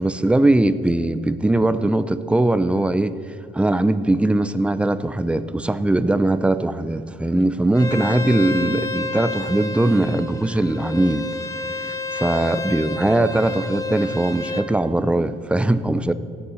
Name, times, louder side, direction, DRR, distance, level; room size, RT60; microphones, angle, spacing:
voice 1, 0.0-3.2 3.5-11.3 11.8-16.1, right 2 dB, 5° right, 12 dB, 0.6 m, -20 dB
Bowed string instrument, 7.7-14.7, left 3 dB, 20° left, 1.3 m, -30 dB
15.0 x 10.0 x 6.3 m, 2.7 s
cardioid pair, 110°, 17 cm